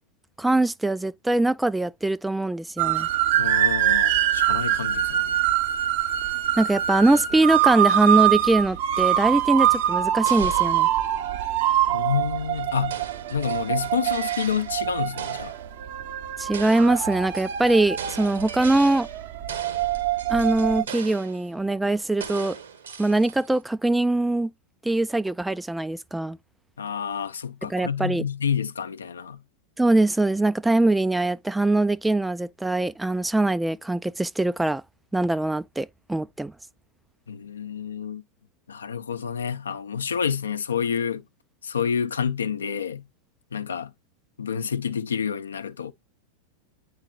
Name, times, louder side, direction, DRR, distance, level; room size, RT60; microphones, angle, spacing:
voice 1, 0.4-3.1 6.6-10.9 16.4-19.1 20.3-22.6 23.0-24.5 24.8-26.4 27.7-28.2 29.8-34.8 35.1-36.5, right 2 dB, 5° right, 0.4 m, -22 dB
sound 1, 2.8-20.8, right 11 dB, 50° right, 0.8 m, -24 dB
voice 2, 3.3-5.4 11.9-13.0 13.3-15.5 26.8-29.4 37.3-38.2 38.7-41.2 41.6-43.0 43.5-43.9 44.4-45.9, left 7 dB, 70° left, 0.6 m, -28 dB
sound 2, 10.2-11.7 12.9-14.9 15.2-15.7 16.5-19.2 19.5-21.5 22.2-23.6, right 7 dB, 70° right, 1.6 m, -39 dB
9.0 x 4.7 x 2.3 m
figure-of-eight pair, 90°, 0 cm